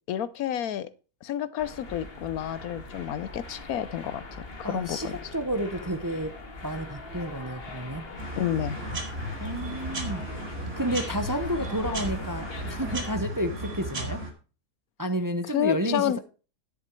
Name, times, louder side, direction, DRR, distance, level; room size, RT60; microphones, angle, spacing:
voice 1, 0.1-0.9 1.2-5.2 8.4-8.8 15.5-16.2, left 11 dB, 80° left, 1.2 m, -30 dB
sound 1, 1.6-13.2, left 3 dB, 40° left, 1.8 m, -41 dB
voice 2, 4.6-6.3 6.6-8.1 9.4-10.3 10.8-14.2 15.0-16.2, right 1 dB, 20° right, 0.7 m, -31 dB
sound 2, 8.2-14.3, right 1 dB, 55° right, 2.7 m, -35 dB
10.5 x 7.3 x 4.5 m
omnidirectional pair, 1.5 m